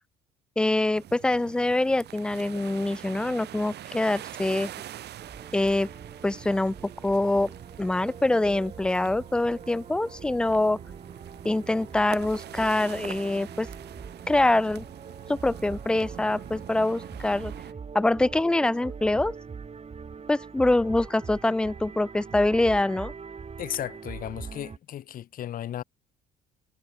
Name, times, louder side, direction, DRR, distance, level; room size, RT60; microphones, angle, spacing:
voice 1, 0.6-4.7 5.5-5.9 6.2-6.7 7.0-7.5 7.8-10.8 11.4-13.7 14.3-14.8 15.3-17.5 17.9-19.3 20.3-23.1, left 2 dB, 5° left, 0.3 m, -24 dB
sound 1, 0.9-17.7, right 12 dB, 50° right, 1.8 m, -44 dB
sound 2, 5.2-24.8, right 5 dB, 30° right, 2.1 m, -42 dB
voice 2, 23.6-25.8, left 11 dB, 40° left, 0.7 m, -35 dB
hypercardioid pair, 55°, 21 cm